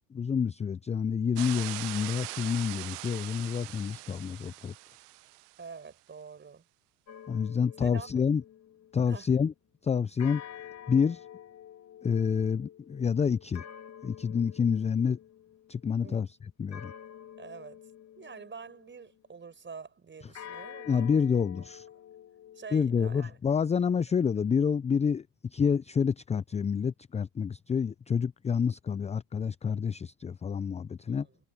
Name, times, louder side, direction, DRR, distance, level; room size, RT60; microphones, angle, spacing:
voice 1, 0.1-4.7 7.3-8.4 8.9-9.5 9.8-10.4 10.9-11.3 12.0-13.7 14.0-15.2 15.7-16.9 20.9-21.9 22.7-25.2 25.5-31.3, left 6 dB, 15° left, 0.6 m, -28 dB
sound 1, 1.4-5.6, right 21 dB, 65° right, 1.4 m, -41 dB
voice 2, 5.6-6.6 7.8-8.3 9.1-9.3 16.0-16.2 17.4-17.8 18.2-21.4 22.5-23.4 31.1-31.4, right 5 dB, 25° right, 6.4 m, -46 dB
sound 2, 7.1-9.2 10.2-15.9 16.7-19.1 20.3-23.2, left 9 dB, 35° left, 3.1 m, -49 dB
hypercardioid pair, 80°, 49 cm